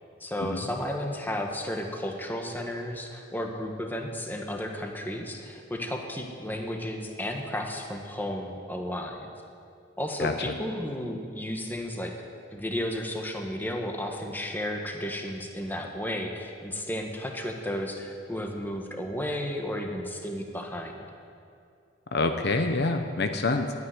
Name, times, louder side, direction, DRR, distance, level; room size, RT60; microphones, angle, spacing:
voice 1, 0.2-9.3 10.0-12.1 12.5-21.0, left 1 dB, 10° left, 2 dB, 1.3 m, -33 dB
voice 2, 22.1-23.7, left 3 dB, 55° left, 6 dB, 0.8 m, -26 dB
12.0 x 9.6 x 9.6 m, 2.4 s
head